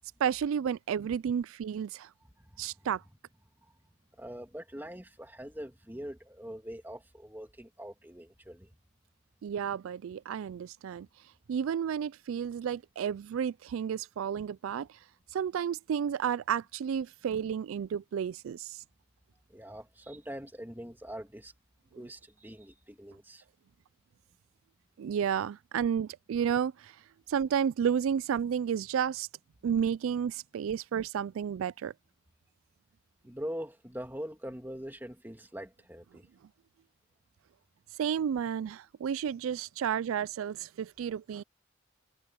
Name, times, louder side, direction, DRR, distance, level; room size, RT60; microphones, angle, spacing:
voice 1, 0.2-2.1 2.6-3.0 9.4-11.1 11.5-15.0 15.3-18.8 25.0-27.0 27.3-29.3 29.6-31.9 38.0-41.4, right 8 dB, 85° right, 0.3 m, -31 dB
voice 2, 2.4-2.9 3.6-3.7 4.1-8.7 19.5-21.5 21.9-23.4 33.2-36.3, equal, 10° right, 2.6 m, -43 dB
head